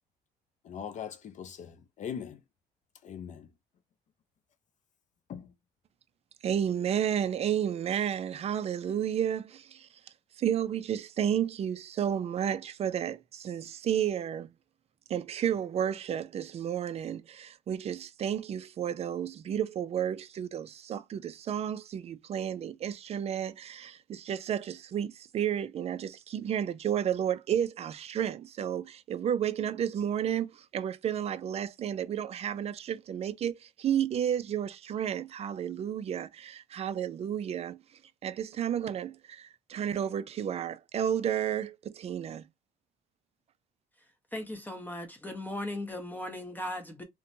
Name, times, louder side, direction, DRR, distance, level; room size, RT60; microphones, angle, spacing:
voice 1, 0.6-2.4 3.0-3.5 5.3-5.5, left 8 dB, 45° left, 0.4 m, -40 dB
voice 2, 6.4-9.9 10.4-14.5 15.1-37.8 38.2-42.5, right 9 dB, 40° right, 0.4 m, -32 dB
voice 3, 44.3-47.0, left 1 dB, 10° left, 0.7 m, -37 dB
2.8 x 2.1 x 2.5 m
cardioid pair, 110°, 17 cm